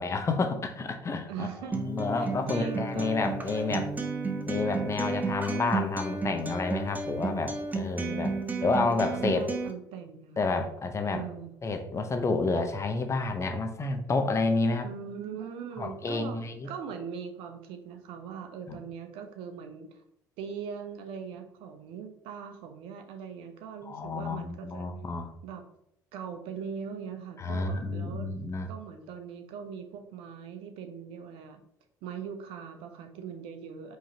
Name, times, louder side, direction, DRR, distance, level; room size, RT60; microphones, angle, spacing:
voice 1, 0.0-1.5 1.8-3.9 4.5-8.3 8.6-9.5 10.4-11.2 11.6-14.9 15.8-16.5 18.7-18.8 23.9-25.3 27.4-28.7, left 3 dB, 30° left, 6 dB, 0.7 m, -29 dB
voice 2, 1.3-1.8 2.1-3.2 8.0-10.5 11.1-11.5 14.8-20.0 20.4-24.9 25.4-25.6 26.1-28.3 28.7-31.6 32.0-34.0, right 7 dB, 65° right, 6 dB, 0.6 m, -40 dB
Acoustic guitar, 1.7-9.7, right 3 dB, 15° right, 0.6 m, -33 dB
4.7 x 3.1 x 2.8 m, 0.76 s
hypercardioid pair, 65°, 10 cm